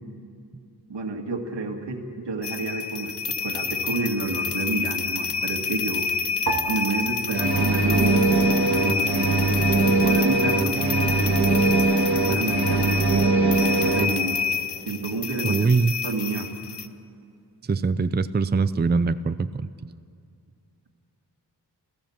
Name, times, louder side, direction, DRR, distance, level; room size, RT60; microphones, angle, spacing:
voice 1, 0.9-6.1 6.6-11.6 12.3-14.4 14.8-15.7 16.0-16.5, right 3 dB, 85° right, 4 dB, 2.2 m, -30 dB
sound 1, 2.4-16.9, left 6 dB, 75° left, 0.9 m, -28 dB
sound 2, 6.5-9.0 9.2-10.1 10.8-11.2, right 4 dB, 40° right, 1.9 m, -35 dB
sound 3, 7.3-14.1, right 3 dB, 65° right, 2.2 m, -21 dB
voice 2, 15.4-15.9 17.7-19.7, right 4 dB, 25° right, 13 dB, 0.5 m, -22 dB
28.0 x 16.0 x 7.2 m, 2.4 s
wide cardioid pair, 75°, 41 cm